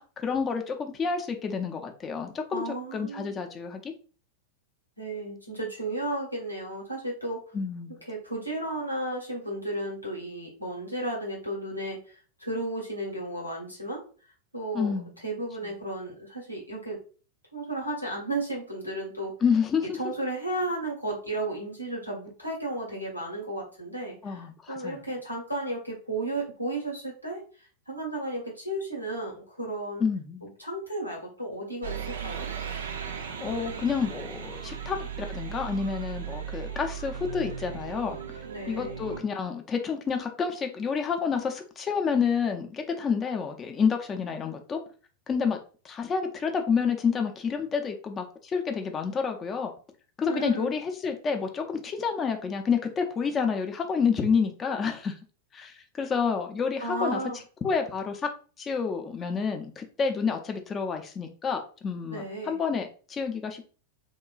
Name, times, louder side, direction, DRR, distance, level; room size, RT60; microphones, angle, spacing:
voice 1, 0.0-2.6 2.9-3.9 7.5-7.9 14.7-15.1 19.4-20.0 24.2-25.0 30.0-30.5 33.4-38.2 38.7-44.8 45.3-45.6 45.8-49.7 50.2-55.2 55.5-57.2 57.6-58.3 58.6-63.6, left 6 dB, 25° left, 5 dB, 0.4 m, -29 dB
voice 2, 2.5-3.4 5.0-7.4 8.1-14.0 14.5-17.0 17.5-19.3 19.8-27.4 27.9-30.0 30.4-32.5 38.4-39.0 50.3-50.7 56.8-57.4 62.1-62.6, right 1 dB, 90° left, -2 dB, 0.9 m, -34 dB
sound 1, 31.8-39.2, right 8 dB, 65° right, 0.4 m, -37 dB
2.9 x 2.2 x 2.3 m, 0.38 s
figure-of-eight pair, 90°, 0 cm